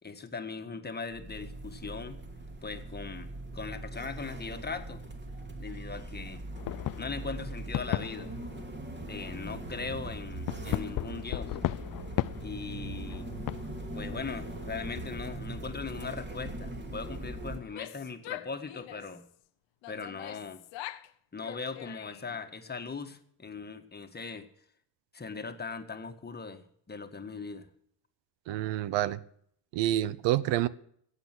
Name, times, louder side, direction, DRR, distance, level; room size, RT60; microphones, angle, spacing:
voice 1, 0.0-2.2 2.6-5.0 5.6-6.5 7.0-8.3 9.1-11.6 12.4-13.3 13.9-19.2 19.9-20.6 21.3-24.5 25.1-27.7, left 4 dB, 20° left, 7 dB, 1.7 m, -39 dB
sound 1, 1.1-17.6, right 1 dB, 25° right, 2.8 m, -41 dB
sound 2, 6.6-8.9 10.5-13.9, left 14 dB, 50° left, 0.5 m, -35 dB
Female speech woman speaking / Yell, 17.6-19.2 19.8-21.1 21.4-22.4, left 16 dB, 85° left, 0.9 m, -44 dB
voice 2, 28.5-29.2 29.7-30.7, right 13 dB, 80° right, 18 dB, 0.9 m, -28 dB
16.0 x 8.3 x 7.7 m, 0.66 s
cardioid pair, 100°, 43 cm